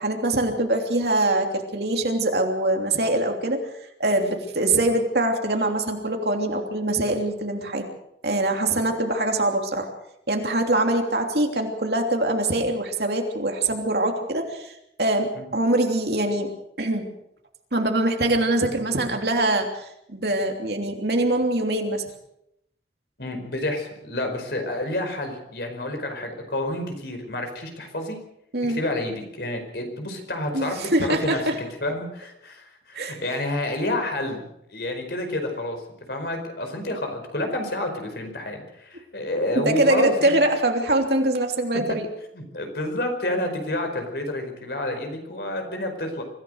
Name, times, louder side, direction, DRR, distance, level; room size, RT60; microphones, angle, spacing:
voice 1, 0.0-3.6 4.0-7.9 8.2-9.9 10.3-16.5 16.8-17.1 17.7-22.0 28.5-28.8 30.5-31.6 32.9-33.2 39.5-42.1, right 1 dB, 60° right, 3 dB, 3.2 m, -23 dB
voice 2, 23.2-28.2 28.6-35.8 36.1-40.3 42.3-46.2, left 1 dB, 60° left, 5 dB, 5.0 m, -29 dB
25.0 x 16.0 x 6.5 m, 0.80 s
head